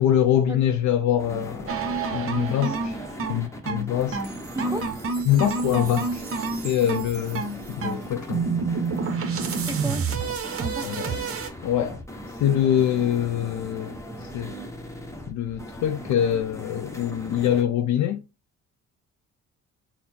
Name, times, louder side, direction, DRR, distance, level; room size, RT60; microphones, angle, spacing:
voice 1, 0.0-1.8 2.1-2.7 3.3-4.3 5.3-6.2 6.5-8.4 10.8-11.2 11.6-12.0 12.4-14.0 14.2-14.5 15.3-18.2, left 10 dB, 70° left, 0.5 m, -24 dB
sound 1, 1.2-17.6, equal, 10° left, 0.9 m, -39 dB
sound 2, 1.7-11.5, right 4 dB, 50° right, 0.8 m, -29 dB
voice 2, 2.4-2.8 4.6-4.9 9.7-10.0 10.6-11.2, right 1 dB, 10° right, 0.5 m, -33 dB
4.1 x 2.0 x 4.2 m
cardioid pair, 90°, 30 cm